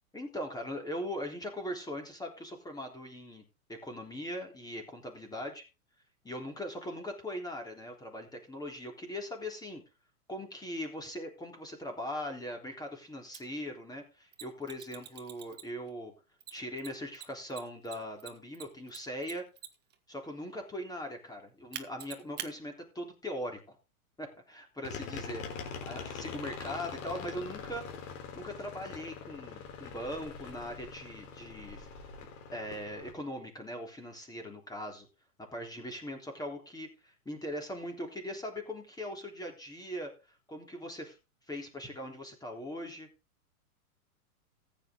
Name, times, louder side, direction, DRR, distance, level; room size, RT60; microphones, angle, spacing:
voice 1, 0.1-3.4 3.7-5.6 6.2-9.8 10.3-16.1 16.5-19.5 20.1-23.8 24.2-25.4 25.8-27.8 28.3-31.9 32.5-35.1 35.5-40.1 40.5-41.2 41.5-43.1, equal, 10° left, 3 dB, 3.5 m, -40 dB
Mechanisms, 13.3-13.4 14.3-15.9 16.4-19.9 21.7-22.5, right 10 dB, 20° right, 1.7 m, -44 dB
sound 1, 24.8-33.1, left 5 dB, 60° left, 4.0 m, -43 dB
14.5 x 8.9 x 3.8 m, 0.29 s
hypercardioid pair, 120°, 44 cm